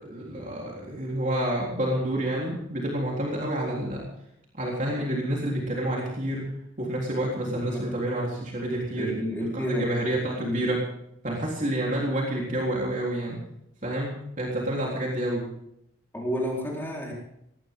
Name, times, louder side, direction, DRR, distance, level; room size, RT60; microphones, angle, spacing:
voice 1, 0.0-4.1 4.5-6.5 6.8-9.1 9.5-10.8 11.2-13.4 13.8-15.5, right 1 dB, 40° right, -3 dB, 3.7 m, -28 dB
voice 2, 9.0-9.9 10.4-10.6 16.1-17.1, equal, 10° left, -3 dB, 4.2 m, -30 dB
20.0 x 17.5 x 3.7 m, 0.77 s
head